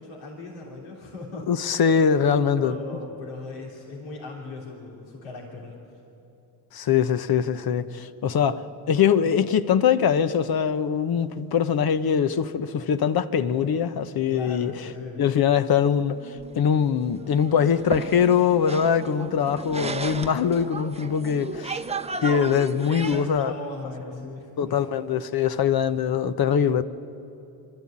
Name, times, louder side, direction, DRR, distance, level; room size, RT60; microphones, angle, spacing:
voice 1, 0.0-1.5 2.6-5.8 14.3-15.3 22.8-24.9, left 2 dB, 80° left, 3.3 m, -38 dB
voice 2, 1.5-2.8 6.7-14.7 15.2-21.8 22.2-23.5 24.6-26.8, left 7 dB, 50° left, 1.1 m, -22 dB
sound 1, 16.1-23.4, right 3 dB, 15° right, 0.8 m, -35 dB
25.5 x 13.0 x 8.7 m
supercardioid pair, 70°, 47 cm